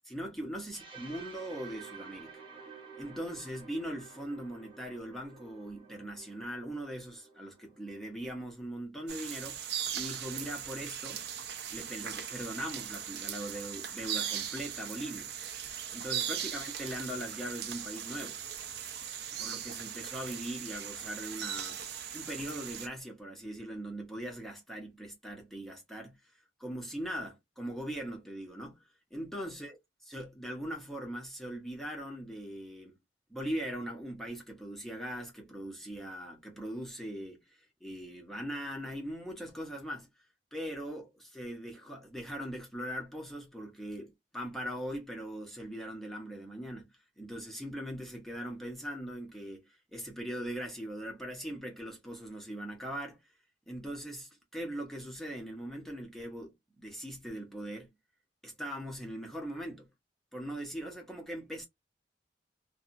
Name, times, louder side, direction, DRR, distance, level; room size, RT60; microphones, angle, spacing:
voice 1, 0.0-2.3 3.0-11.3 11.7-15.3 15.9-18.4 19.3-21.8 22.1-26.2 26.6-28.8 29.1-32.9 33.3-40.1 40.5-46.9 47.2-53.2 53.7-57.9 58.4-59.9 60.3-61.7, equal, ahead, 0.9 m, -40 dB
sound 1, 0.7-8.5, right 5 dB, 25° right, 1.1 m, -51 dB
sound 2, 9.1-22.9, right 9 dB, 65° right, 0.6 m, -39 dB
2.7 x 2.4 x 2.5 m
head